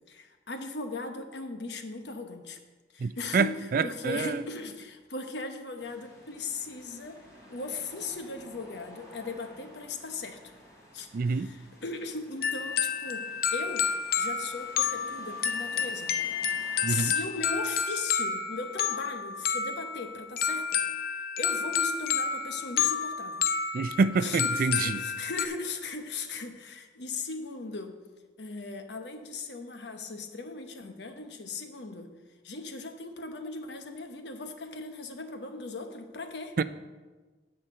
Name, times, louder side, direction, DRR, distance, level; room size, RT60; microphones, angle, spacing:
voice 1, 0.1-2.6 2.9-3.5 3.8-7.2 7.5-10.4 10.9-13.2 13.5-13.9 14.2-16.1 16.9-20.8 21.4-23.4 24.2-27.9 28.4-32.1 32.4-36.6, left 3 dB, 80° left, 6 dB, 1.0 m, -38 dB
voice 2, 3.0-4.4 11.1-11.5 16.8-17.1 23.7-25.0 36.6-36.7, right 4 dB, 55° right, 14 dB, 0.3 m, -27 dB
sound 1, 5.8-17.5, equal, 20° left, 3.1 m, -52 dB
sound 2, 12.4-25.5, left 7 dB, 55° left, 0.6 m, -30 dB
10.0 x 4.4 x 7.7 m, 1.3 s
head